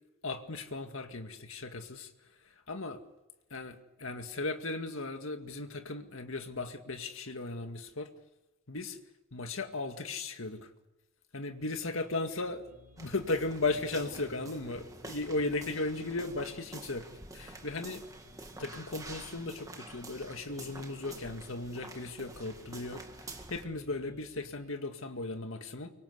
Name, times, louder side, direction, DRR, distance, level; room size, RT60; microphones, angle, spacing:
voice 1, 0.2-2.1 2.7-3.0 3.5-8.1 8.7-9.0 9.3-10.7 11.3-17.1 17.3-18.0 18.6-25.9, left 2 dB, 65° left, 6 dB, 2.1 m, -36 dB
sound 1, 11.9-24.7, left 1 dB, 40° right, 3.6 m, -60 dB
sound 2, 13.0-23.6, right 2 dB, 15° right, 1.8 m, -48 dB
24.5 x 24.0 x 8.2 m, 0.98 s
head